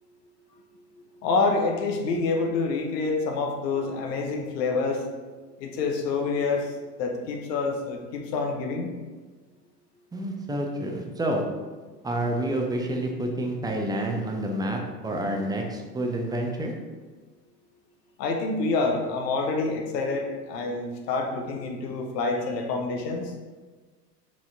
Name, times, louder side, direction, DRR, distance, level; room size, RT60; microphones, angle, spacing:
voice 1, 1.2-5.0 5.6-6.7 7.0-8.9 18.2-23.3, left 3 dB, 75° left, 3 dB, 0.9 m, -27 dB
voice 2, 10.1-11.4 12.0-16.8, right 1 dB, 10° right, 1 dB, 0.5 m, -28 dB
4.5 x 4.1 x 2.7 m, 1.3 s
hypercardioid pair, 75°, 49 cm